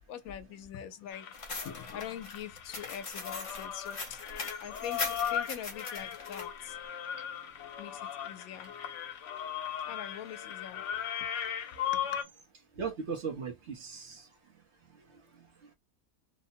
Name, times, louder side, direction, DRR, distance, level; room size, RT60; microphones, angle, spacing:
voice 1, 0.1-4.2 4.6-6.8 7.8-8.7 9.9-10.8 11.2-11.3 11.9-12.2, left 9 dB, 85° left, 1.1 m, -44 dB
sound 1, 1.1-12.2, left 9 dB, 70° left, 0.9 m, -38 dB
sound 2, 1.3-6.5, left 3 dB, 40° left, 0.4 m, -40 dB
voice 2, 12.7-14.3 14.9-15.7, right 5 dB, 55° right, 1.1 m, -39 dB
3.2 x 2.0 x 2.6 m
omnidirectional pair, 1.5 m